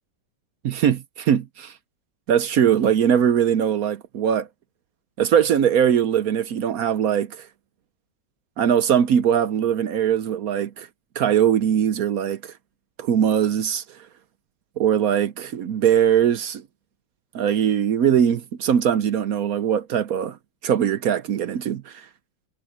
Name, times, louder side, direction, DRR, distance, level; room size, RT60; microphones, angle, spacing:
voice 1, 0.6-1.7 2.3-4.5 5.2-7.5 8.6-10.9 11.2-12.5 13.0-13.8 14.8-16.6 17.3-20.4 20.6-22.0, right 9 dB, 60° right, 1.0 m, -21 dB
omnidirectional pair, 2.0 m